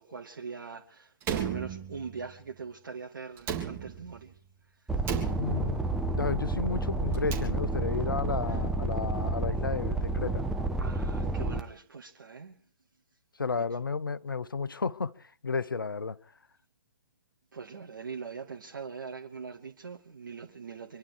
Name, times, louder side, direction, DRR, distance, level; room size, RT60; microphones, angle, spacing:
voice 1, 0.0-4.3 10.8-12.6 13.5-13.6 17.5-21.0, right 5 dB, 65° right, 1.9 m, -42 dB
Slam, 1.2-2.3 3.4-4.3 5.0-5.9 7.0-8.0, right 9 dB, 20° right, 3.6 m, -36 dB
sound 1, 4.9-11.6, right 2 dB, 5° right, 1.3 m, -30 dB
voice 2, 5.4-5.8 6.2-10.5 13.4-15.1 15.4-16.2, left 4 dB, 80° left, 0.9 m, -32 dB
26.5 x 11.5 x 4.6 m
figure-of-eight pair, 125°, 11 cm